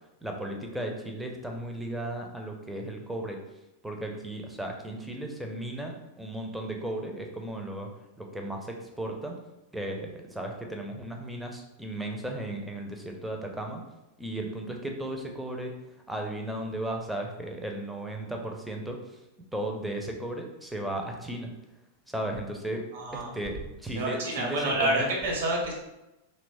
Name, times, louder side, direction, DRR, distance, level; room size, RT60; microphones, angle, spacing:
voice 1, 0.2-3.4 3.8-7.9 8.2-9.4 9.7-13.8 14.2-15.7 16.1-19.2 19.5-21.5 22.1-22.8 23.1-25.1, right 1 dB, 5° right, 1 dB, 0.4 m, -35 dB
voice 2, 22.9-23.3 23.9-25.7, right 1 dB, 55° right, -1 dB, 0.7 m, -28 dB
2.8 x 2.1 x 2.6 m, 0.95 s
figure-of-eight pair, 90°, 0 cm